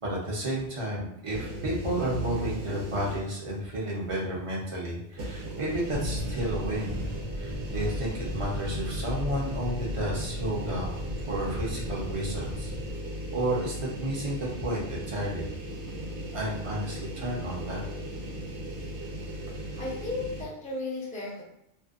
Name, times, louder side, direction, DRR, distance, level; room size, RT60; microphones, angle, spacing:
voice 1, 0.0-7.0 7.4-11.0 11.3-12.7 13.3-15.5 16.3-17.9, right 1 dB, 35° right, -5 dB, 0.6 m, -32 dB
sound 1, 1.3-3.5 3.9-4.0 5.1-20.4, equal, 85° right, 0.9 m, -36 dB
sound 2, 5.9-12.9, right 1 dB, 50° right, 1.0 m, -37 dB
voice 2, 19.8-21.4, left 2 dB, 10° left, -6 dB, 0.5 m, -34 dB
2.5 x 2.1 x 2.4 m, 0.79 s
omnidirectional pair, 1.2 m